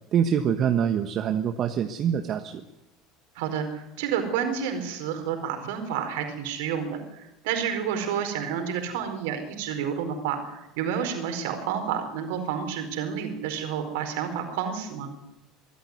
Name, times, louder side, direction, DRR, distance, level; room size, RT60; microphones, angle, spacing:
voice 1, 0.1-2.6, right 8 dB, 45° right, 8 dB, 1.3 m, -25 dB
voice 2, 3.3-15.1, right 7 dB, 65° right, 6 dB, 4.5 m, -30 dB
23.0 x 13.5 x 9.6 m, 0.95 s
figure-of-eight pair, 70°, 0 cm